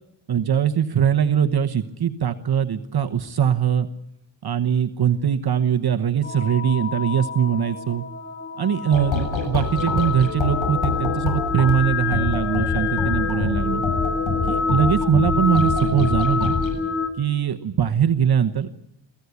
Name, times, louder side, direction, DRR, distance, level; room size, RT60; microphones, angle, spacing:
voice 1, 0.3-3.9 4.4-8.0 8.6-13.8 14.5-16.5 17.2-18.8, right 8 dB, 55° right, 7 dB, 1.1 m, -21 dB
sound 1, 6.2-17.1, left 5 dB, 25° left, 2.7 m, -27 dB
sound 2, 8.9-16.7, left 4 dB, 85° left, 7.3 m, -26 dB
23.0 x 16.0 x 8.4 m, 0.87 s
wide cardioid pair, 120°, 45 cm